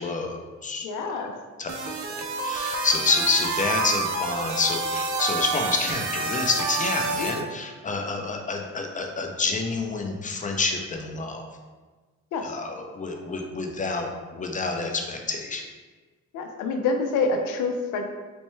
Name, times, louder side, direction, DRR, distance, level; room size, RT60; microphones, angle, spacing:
voice 1, 0.0-1.2 1.6-11.4 12.4-15.6, left 3 dB, 25° left, 3 dB, 0.5 m, -28 dB
voice 2, 0.8-1.3 7.2-7.3 12.3-12.5 16.3-18.1, left 3 dB, 90° left, 4 dB, 0.5 m, -27 dB
sound 1, 1.7-7.4, right 4 dB, 70° right, 0.5 m, -28 dB
4.3 x 2.2 x 3.0 m, 1.3 s
cardioid pair, 90°, 30 cm